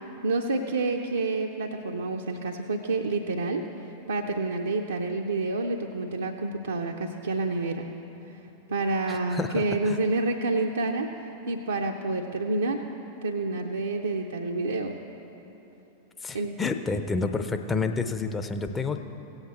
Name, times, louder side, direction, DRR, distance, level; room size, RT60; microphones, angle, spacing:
voice 1, 0.2-3.6 4.1-7.9 8.7-11.1 11.5-12.8 13.2-14.9 16.3-16.6, right 3 dB, 75° right, 0 dB, 0.5 m, -28 dB
voice 2, 9.1-10.0 16.2-19.0, left 4 dB, 15° left, 7 dB, 0.6 m, -29 dB
16.5 x 8.0 x 4.1 m, 3.0 s
figure-of-eight pair, 90°, 0 cm